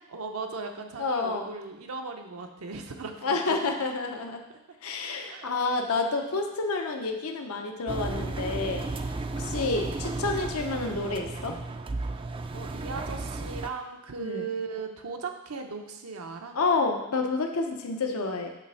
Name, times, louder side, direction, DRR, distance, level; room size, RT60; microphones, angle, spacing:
voice 1, 0.1-3.4 5.3-5.5 12.5-16.6, right 4 dB, 80° right, 4 dB, 0.8 m, -37 dB
voice 2, 1.0-1.4 3.2-4.4 4.8-9.0 9.4-11.6 14.2-14.5 16.5-18.5, left 3 dB, 80° left, 4 dB, 0.8 m, -29 dB
Engine, 7.9-13.7, right 3 dB, 25° right, 0.3 m, -34 dB
7.3 x 3.4 x 5.7 m, 0.95 s
head